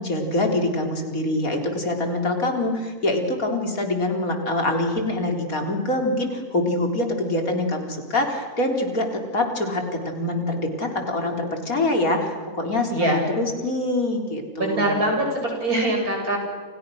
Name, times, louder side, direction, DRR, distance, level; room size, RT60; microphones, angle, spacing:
voice 1, 0.0-15.1, left 1 dB, 70° left, 3 dB, 4.3 m, -25 dB
voice 2, 14.6-16.4, right 1 dB, 75° right, 1 dB, 7.7 m, -23 dB
29.5 x 29.0 x 6.4 m, 1.5 s
omnidirectional pair, 1.6 m